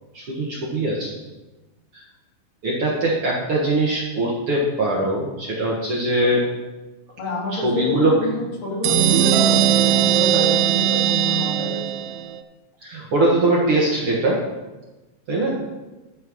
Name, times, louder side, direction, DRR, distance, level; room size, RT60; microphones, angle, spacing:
voice 1, 0.1-1.1 1.9-2.0 2.6-6.5 7.5-8.2 12.8-14.4 15.3-15.6, right 1 dB, 50° right, -3 dB, 2.0 m, -21 dB
voice 2, 7.2-11.8, left 2 dB, 70° left, -4 dB, 4.1 m, -28 dB
sound 1, 8.8-12.4, right 11 dB, 85° right, 1.6 m, -19 dB
13.5 x 4.5 x 6.2 m, 1.1 s
omnidirectional pair, 4.0 m